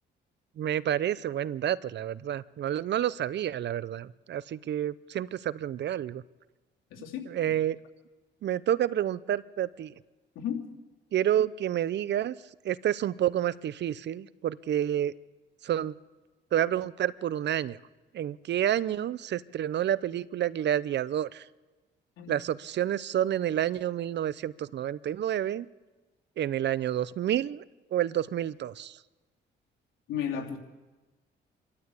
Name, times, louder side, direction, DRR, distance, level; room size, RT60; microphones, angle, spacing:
voice 1, 0.6-6.2 7.3-7.8 8.4-9.9 11.1-12.3 12.6-15.1 15.6-15.9 16.5-17.8 18.1-21.4 22.3-25.7 26.4-27.6 27.9-29.0, right 11 dB, 60° right, 18 dB, 0.7 m, -29 dB
voice 2, 6.9-7.5 10.3-10.6 22.2-22.4 30.1-30.6, left 8 dB, 90° left, 0 dB, 2.9 m, -34 dB
27.0 x 13.0 x 8.3 m, 1.2 s
cardioid pair, 90°, 20 cm